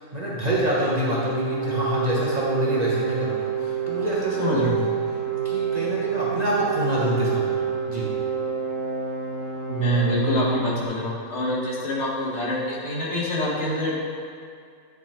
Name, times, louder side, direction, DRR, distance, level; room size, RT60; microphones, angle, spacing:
voice 1, 0.0-4.9 5.4-7.6 7.9-8.1, equal, 35° right, -6 dB, 1.0 m, -26 dB
sound 1, 1.0-10.9, right 7 dB, 75° right, 2.0 m, -28 dB
voice 2, 4.4-4.8 9.7-13.9, equal, 60° left, -6 dB, 1.7 m, -25 dB
9.9 x 3.7 x 4.3 m, 2.2 s
omnidirectional pair, 1.4 m